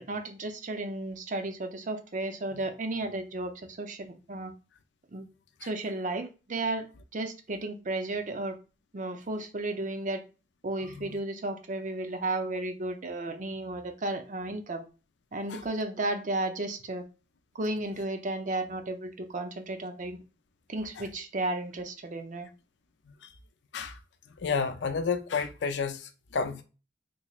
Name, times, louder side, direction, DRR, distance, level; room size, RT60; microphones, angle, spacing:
voice 1, 0.0-4.5 5.1-5.3 5.6-6.9 7.1-8.5 8.9-10.2 10.6-14.8 15.3-17.0 17.5-20.2 20.7-22.5, right 2 dB, 45° right, 0.6 m, -33 dB
voice 2, 24.4-26.6, left 5 dB, 90° left, 0.5 m, -31 dB
3.9 x 3.0 x 2.4 m
head